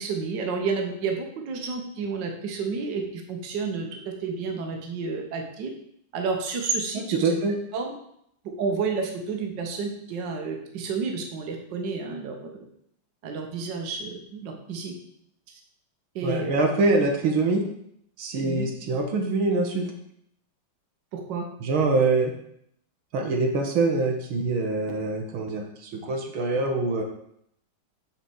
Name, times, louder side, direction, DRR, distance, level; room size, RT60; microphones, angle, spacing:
voice 1, 0.0-5.7 6.1-7.3 7.7-7.9 8.6-12.4 13.2-14.9 15.5-15.6 16.2-16.7 18.4-18.7 21.1-21.4, right 4 dB, 65° right, 2 dB, 1.8 m, -30 dB
voice 2, 6.9-7.6 16.2-17.6 18.2-19.9 21.6-22.3 23.1-27.0, right 3 dB, 80° right, 2 dB, 2.0 m, -24 dB
7.4 x 4.5 x 7.0 m, 0.72 s
omnidirectional pair, 2.2 m